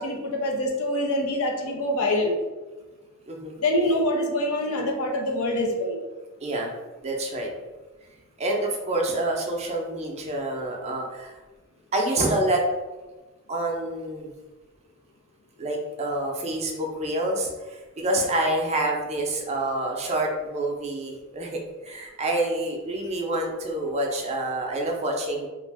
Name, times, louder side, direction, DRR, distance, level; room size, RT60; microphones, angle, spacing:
voice 1, 0.0-2.3 3.6-6.0, left 1 dB, 80° left, 1 dB, 0.6 m, -25 dB
voice 2, 6.4-6.7 7.0-7.5 8.4-11.4 11.9-12.6 13.5-14.3 15.6-25.5, right 1 dB, 30° right, 0 dB, 0.4 m, -27 dB
2.4 x 2.1 x 3.3 m, 1.2 s
head